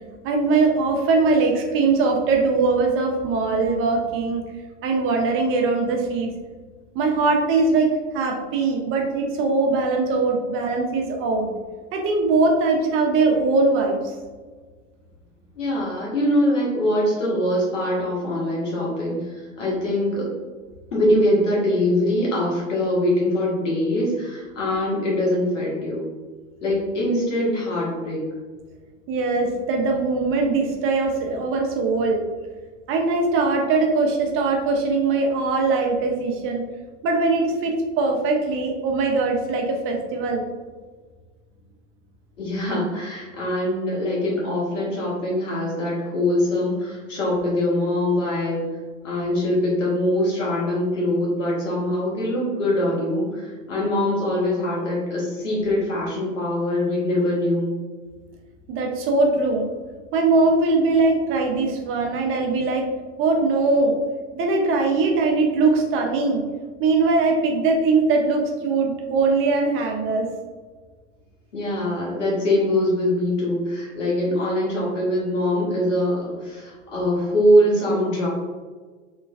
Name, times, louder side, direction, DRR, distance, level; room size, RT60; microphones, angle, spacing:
voice 1, 0.2-4.4 4.8-6.3 6.9-7.9 8.1-11.5 11.9-14.1 29.1-32.2 32.9-36.6 37.0-40.4 58.7-59.7 60.1-62.9 63.2-64.0 64.3-66.4 66.8-70.3, right 3 dB, 35° right, 2 dB, 0.6 m, -21 dB
voice 2, 15.5-20.3 20.9-26.0 26.6-28.2 42.4-48.7 49.0-57.7 71.5-78.3, left 1 dB, 85° left, -4 dB, 1.4 m, -23 dB
3.1 x 3.1 x 2.3 m, 1.4 s
hypercardioid pair, 95°, 36 cm